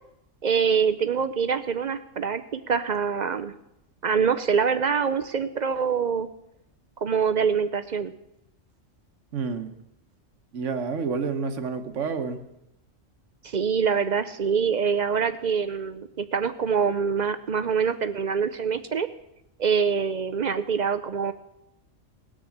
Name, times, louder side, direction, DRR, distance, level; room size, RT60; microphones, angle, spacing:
voice 1, 0.4-3.5 4.0-6.3 7.0-8.1 13.4-19.1 19.6-21.3, right 6 dB, 50° right, 11 dB, 0.5 m, -25 dB
voice 2, 9.3-9.7 10.5-12.4, right 5 dB, 70° right, 8 dB, 1.4 m, -29 dB
18.5 x 6.4 x 7.2 m, 0.84 s
omnidirectional pair, 1.3 m